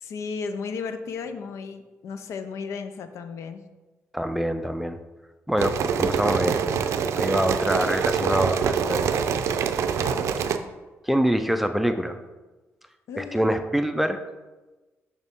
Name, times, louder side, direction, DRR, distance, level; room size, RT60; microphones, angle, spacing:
voice 1, 0.0-3.6 9.8-10.4 13.1-13.4, left 5 dB, 75° left, 9 dB, 0.6 m, -34 dB
voice 2, 4.1-5.0 5.5-6.6 7.1-9.1 11.1-12.2 13.2-14.2, equal, 5° right, 7 dB, 0.4 m, -25 dB
sound 1, 5.6-10.6, right 7 dB, 75° right, 0.5 m, -25 dB
6.6 x 6.0 x 3.6 m, 1.2 s
cardioid pair, 150°, 5 cm